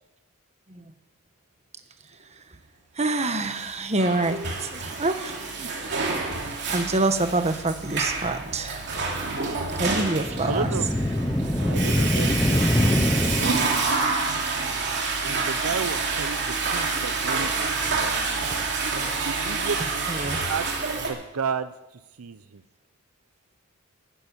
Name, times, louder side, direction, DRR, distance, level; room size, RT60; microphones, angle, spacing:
voice 1, 3.0-8.8 9.8-10.7 18.5-18.6 20.1-20.4, right 2 dB, 30° right, 8 dB, 1.2 m, -27 dB
Water / Toilet flush, 3.6-21.1, right 4 dB, 55° right, 2.8 m, -28 dB
sound 1, 10.2-14.0, left 1 dB, 10° left, 0.5 m, -24 dB
voice 2, 10.4-10.9 11.7-13.7 15.2-18.2 19.2-20.7 21.0-21.7 22.2-22.6, right 5 dB, 75° right, 12 dB, 0.7 m, -33 dB
11.5 x 10.5 x 9.8 m, 0.96 s
head